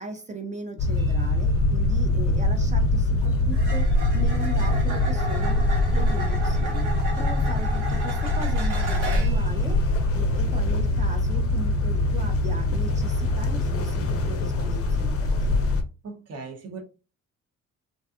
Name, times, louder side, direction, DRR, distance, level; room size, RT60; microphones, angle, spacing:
voice 1, 0.0-15.5, right 1 dB, 25° right, 0.5 m, -38 dB
sound 1, 0.8-15.8, left 2 dB, 50° left, 0.5 m, -23 dB
sound 2, 1.0-1.2 3.5-9.5 13.2-13.4, right 2 dB, 80° right, 1.1 m, -35 dB
voice 2, 16.0-16.8, right 4 dB, 55° right, 0.8 m, -38 dB
2.6 x 2.3 x 2.4 m
cardioid pair, 90°, 30 cm